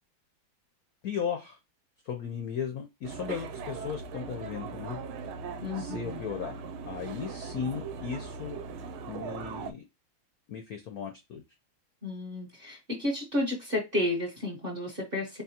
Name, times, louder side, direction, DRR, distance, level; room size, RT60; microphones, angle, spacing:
voice 1, 1.0-1.6 2.0-5.0 5.8-8.6 9.1-9.8 10.5-11.4, left 7 dB, 70° left, 0.9 m, -36 dB
sound 1, 3.0-9.7, right 5 dB, 80° right, 1.4 m, -39 dB
voice 2, 5.6-6.2 12.0-15.4, left 1 dB, 35° right, 1.0 m, -32 dB
4.1 x 3.5 x 2.8 m
omnidirectional pair, 2.3 m